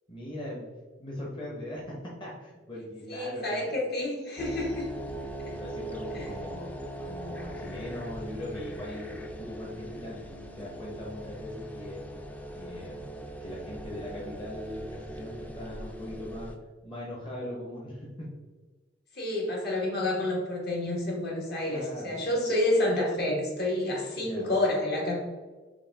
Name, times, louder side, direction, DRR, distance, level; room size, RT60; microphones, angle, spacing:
voice 1, 0.1-0.7 1.0-3.8 5.5-12.0 12.5-16.5 16.8-18.3 21.6-22.3 24.1-24.5, left 1 dB, 25° left, -5 dB, 0.9 m, -40 dB
voice 2, 3.1-4.9 5.2-5.3 6.1-6.2 19.1-25.2, left 1 dB, 55° left, -3 dB, 1.4 m, -29 dB
sound 1, 4.4-16.6, right 1 dB, 10° left, 0.4 m, -40 dB
6.3 x 2.4 x 3.5 m, 1.4 s
head